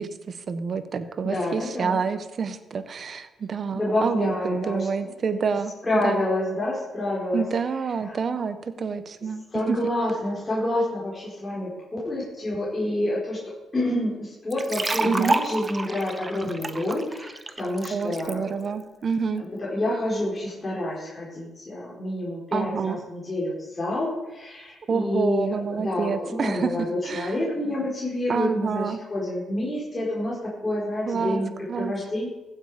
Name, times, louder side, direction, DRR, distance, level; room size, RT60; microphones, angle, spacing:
voice 1, 0.0-6.3 7.3-9.8 15.0-15.4 17.9-19.4 22.5-23.0 24.9-27.4 28.3-29.0 31.0-31.4 31.7-31.9, right 5 dB, 45° right, 11 dB, 1.2 m, -28 dB
voice 2, 1.2-2.0 3.7-5.1 5.8-7.4 8.1-8.2 9.5-11.7 12.0-13.4 13.7-18.4 19.6-30.4 30.6-32.3, left 1 dB, 20° left, -7 dB, 4.6 m, -28 dB
sound 1, 14.5-18.3, right 3 dB, 25° right, 1.0 m, -29 dB
15.5 x 8.6 x 5.1 m, 1.1 s
cardioid pair, 90°, 0 cm